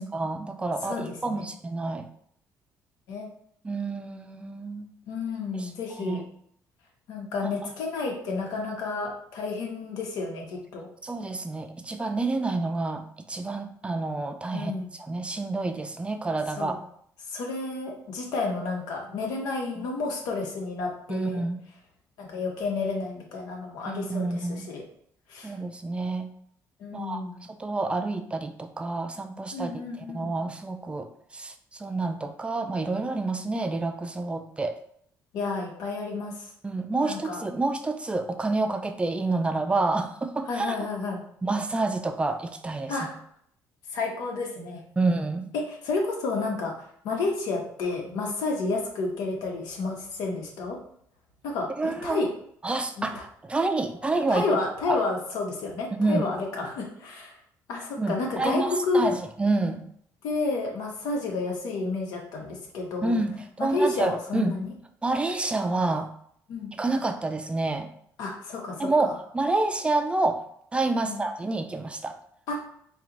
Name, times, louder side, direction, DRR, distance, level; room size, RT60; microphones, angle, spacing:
voice 1, 0.1-2.1 3.6-4.9 5.5-5.7 6.0-6.2 11.0-16.8 19.8-19.9 21.1-21.6 23.9-24.7 25.4-26.3 26.9-29.8 30.1-34.8 36.6-40.8 41.4-42.9 45.0-45.5 51.8-52.3 52.6-54.5 54.9-55.0 56.0-56.3 58.0-59.8 63.0-64.6 65.0-66.1 66.7-67.9 68.8-72.2, right 3 dB, 15° right, 7 dB, 0.4 m, -28 dB
voice 2, 0.8-1.4 3.1-3.3 5.1-6.2 7.1-10.9 14.5-14.9 16.6-16.8 17.3-21.4 22.2-24.8 25.3-25.5 26.8-27.4 29.5-30.3 35.3-36.5 37.0-37.4 40.5-41.2 42.9-43.2 43.9-44.8 45.7-50.8 51.4-52.3 53.0-53.1 54.3-57.4 57.7-59.1 60.2-63.1 63.6-64.7 66.5-66.7 68.2-69.1 70.9-71.2 72.5-72.6, left 3 dB, 85° left, 0 dB, 1.1 m, -31 dB
4.4 x 2.4 x 3.9 m, 0.66 s
cardioid pair, 110°, 7 cm